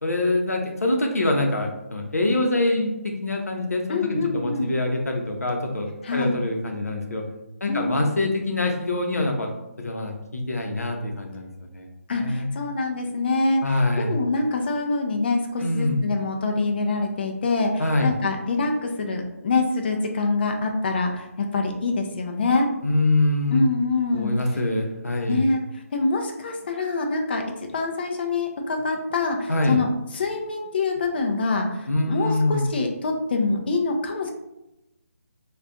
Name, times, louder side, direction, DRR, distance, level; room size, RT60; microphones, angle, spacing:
voice 1, 0.0-2.9 3.2-7.2 7.6-9.5 9.8-11.5 11.7-11.9 12.2-12.5 13.6-14.1 15.6-16.0 17.8-18.1 22.8-23.6 24.1-25.4 29.5-29.8 31.9-32.7, left 2 dB, 80° left, 2 dB, 0.7 m, -24 dB
voice 2, 3.9-4.7 6.0-6.3 7.7-8.0 12.1-22.7 23.5-24.3 25.3-25.6 25.9-34.3, left 3 dB, 40° left, 3 dB, 0.4 m, -25 dB
2.4 x 2.2 x 3.7 m, 0.91 s
figure-of-eight pair, 150°, 8 cm